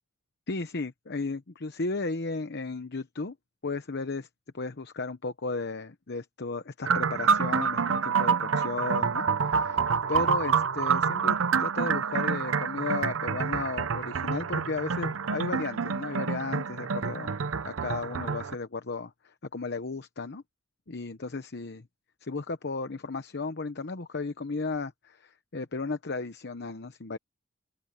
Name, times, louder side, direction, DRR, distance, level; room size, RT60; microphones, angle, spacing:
voice 1, 0.5-3.4 3.6-4.3 4.5-17.3 17.6-20.4 20.9-21.9 22.2-27.2, left 3 dB, 55° left, 1.0 m, -34 dB
sound 1, 6.8-18.6, right 6 dB, 75° right, 0.7 m, -27 dB
open air
head